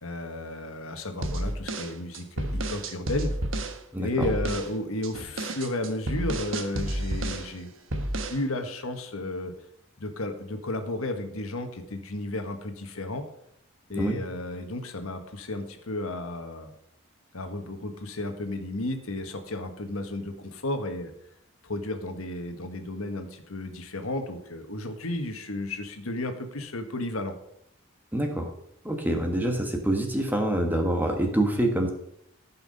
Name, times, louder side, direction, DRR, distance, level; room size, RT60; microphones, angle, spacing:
voice 1, 0.0-3.3 4.0-7.7 8.3-9.5 10.0-13.2 13.9-16.7 17.3-21.1 21.6-27.3, left 2 dB, 75° left, 6 dB, 1.4 m, -33 dB
sound 1, 1.2-3.8 4.2-4.7 5.0-7.5 7.9-8.4, right 1 dB, 65° right, 1.2 m, -31 dB
voice 2, 3.9-4.3 13.9-14.2 28.1-28.5 28.8-31.9, right 1 dB, 10° right, 3 dB, 1.4 m, -26 dB
15.0 x 5.8 x 5.4 m, 0.74 s
head